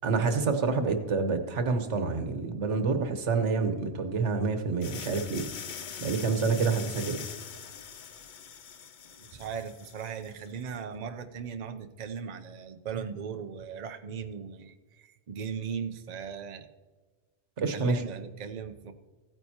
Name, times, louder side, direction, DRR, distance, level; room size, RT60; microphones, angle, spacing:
voice 1, 0.0-5.5 6.0-7.2 17.6-18.0, right 4 dB, 90° right, 7 dB, 1.3 m, -28 dB
sound 1, 4.8-10.5, left 7 dB, 55° left, 0.6 m, -43 dB
voice 2, 9.2-16.7 17.7-18.9, right 7 dB, 45° right, 7 dB, 0.7 m, -38 dB
15.5 x 9.0 x 2.8 m, 1.4 s
omnidirectional pair, 1.2 m